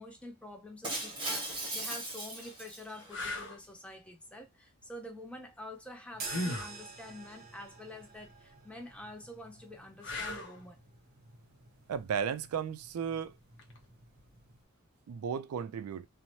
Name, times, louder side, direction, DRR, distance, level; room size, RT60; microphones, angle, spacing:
voice 1, 0.0-10.8, left 1 dB, 5° left, 0.4 m, -47 dB
Shatter, 0.8-3.2, right 2 dB, 20° right, 0.9 m, -38 dB
sound 1, 1.5-1.7 2.4-2.5 3.1-3.6 6.2-6.8 10.0-10.6 13.6-13.8, left 2 dB, 55° left, 0.6 m, -37 dB
sound 2, 6.1-14.6, right 4 dB, 40° right, 0.7 m, -50 dB
voice 2, 11.9-13.3 15.1-16.1, right 7 dB, 80° right, 0.3 m, -34 dB
2.7 x 2.0 x 3.0 m
head